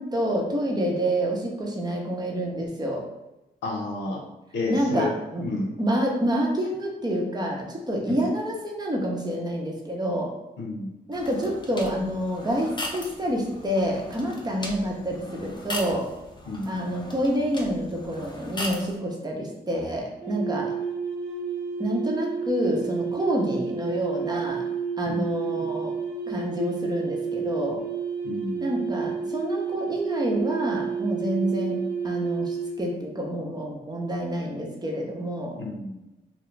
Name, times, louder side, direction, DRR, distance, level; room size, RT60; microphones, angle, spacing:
voice 1, 0.0-3.0 4.7-5.4 5.8-10.3 11.1-16.1 16.7-20.8 21.8-24.6 25.0-26.0 26.3-27.8 28.6-31.8 32.0-35.6, equal, 20° right, -1 dB, 0.8 m, -28 dB
voice 2, 3.6-4.2 4.5-5.1 5.4-5.7 8.1-8.2 10.6-10.9 16.5-16.9 25.1-25.7 28.2-28.8 35.6-36.1, left 2 dB, 80° left, -1 dB, 0.7 m, -31 dB
sound 1, 11.1-19.0, left 1 dB, 25° left, 0.6 m, -38 dB
sound 2, 20.2-32.9, right 6 dB, 80° right, 0.8 m, -30 dB
2.3 x 2.1 x 3.2 m, 0.97 s
supercardioid pair, 45°, 18 cm